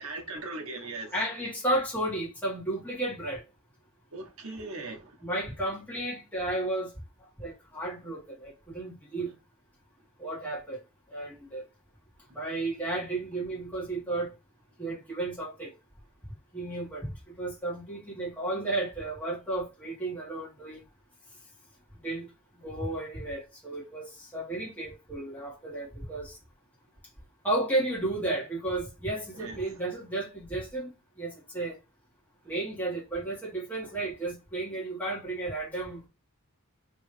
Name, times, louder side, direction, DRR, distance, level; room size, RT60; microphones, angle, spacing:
voice 1, 0.0-1.1 4.1-5.2 29.3-29.6, right 2 dB, 70° right, 1.1 m, -39 dB
voice 2, 1.1-3.4 5.2-6.9 7.4-9.3 10.2-10.8 11.1-11.6 12.3-14.3 14.8-15.7 16.5-17.1 17.4-20.8 22.0-22.3 22.6-26.4 27.4-30.9 31.2-31.8 32.4-36.0, right 2 dB, 10° left, 1.6 m, -33 dB
3.4 x 3.0 x 3.1 m
head